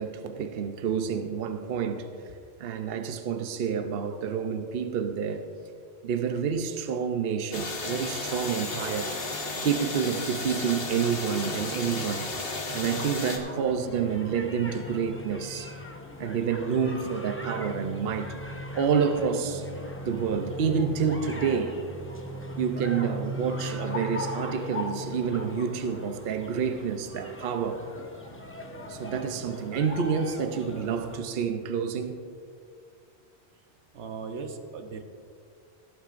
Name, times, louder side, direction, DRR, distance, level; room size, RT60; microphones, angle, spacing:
voice 1, 0.0-2.3 2.6-5.5 6.0-12.3 12.7-15.7 16.2-18.4 18.7-19.7 20.0-21.7 22.6-27.8 28.9-32.2, right 6 dB, 60° right, 7 dB, 0.9 m, -28 dB
sound 1, 7.5-13.4, left 3 dB, 55° left, 1.4 m, -33 dB
sound 2, 12.8-31.2, equal, 15° left, 0.8 m, -38 dB
voice 2, 33.9-35.0, right 5 dB, 90° right, 5 dB, 1.2 m, -38 dB
17.5 x 11.5 x 2.5 m, 2.2 s
omnidirectional pair, 1.1 m